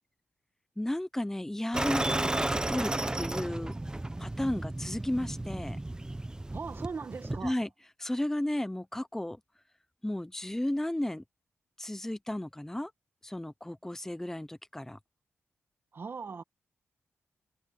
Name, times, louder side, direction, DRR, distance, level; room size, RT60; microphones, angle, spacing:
voice 1, 0.8-3.7 4.2-5.8 7.4-7.7 8.0-9.4 10.0-11.2 11.8-12.9 13.2-15.0, left 1 dB, 10° left, 1.0 m, -33 dB
sound 1, 1.7-7.5, right 2 dB, 15° right, 0.9 m, -33 dB
voice 2, 6.5-7.6 15.9-16.4, right 5 dB, 50° right, 1.5 m, -39 dB
cardioid pair, 75°, 5 cm